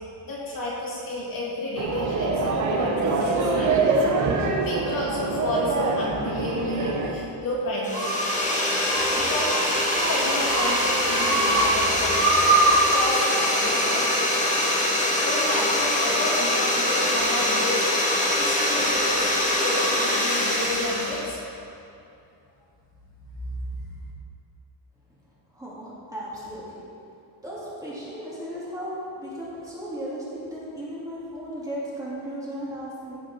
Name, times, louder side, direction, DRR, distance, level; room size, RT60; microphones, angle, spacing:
voice 1, 0.2-3.8 4.6-8.1 9.1-9.5 9.9-14.1 15.2-19.3 19.6-21.4 23.4-23.9, left 1 dB, 45° left, -6 dB, 3.4 m, -31 dB
sound 1, 1.8-7.1, right 3 dB, 40° right, 1.2 m, -24 dB
sound 2, 7.8-21.3, left 1 dB, 15° left, 1.5 m, -23 dB
sound 3, 7.9-8.5 8.9-9.1 9.4-9.7 10.0-10.7 11.0-11.6 12.0-12.8, right 3 dB, 75° right, 2.4 m, -24 dB
voice 2, 25.5-26.8 27.4-33.2, equal, 5° right, -9 dB, 2.6 m, -35 dB
15.5 x 6.3 x 6.1 m, 2.6 s
cardioid pair, 180°, 46 cm